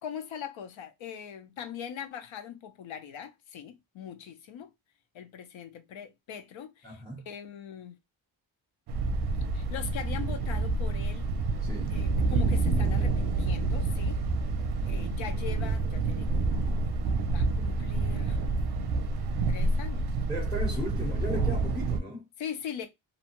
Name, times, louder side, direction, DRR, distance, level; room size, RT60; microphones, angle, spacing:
voice 1, 0.0-4.7 5.1-8.0 9.5-11.3 11.9-14.2 14.9-16.6 17.2-18.4 19.5-20.2 22.4-22.9, left 8 dB, 75° left, 0.7 m, -41 dB
voice 2, 6.8-7.2 11.6-11.9 20.3-22.2, equal, 10° left, 0.9 m, -36 dB
Thunder, 8.9-22.0, right 3 dB, 55° right, 0.5 m, -28 dB
2.7 x 2.1 x 2.9 m
wide cardioid pair, 145°, 47 cm